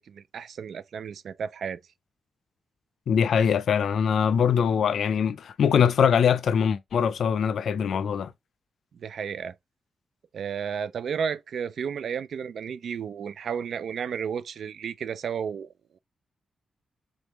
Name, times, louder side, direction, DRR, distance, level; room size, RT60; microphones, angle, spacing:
voice 1, 0.0-1.8 8.9-9.6 10.3-16.0, right 7 dB, 65° right, 0.4 m, -33 dB
voice 2, 3.1-8.3, left 7 dB, 65° left, 0.4 m, -22 dB
3.8 x 3.5 x 2.9 m
wide cardioid pair, 155°, 0 cm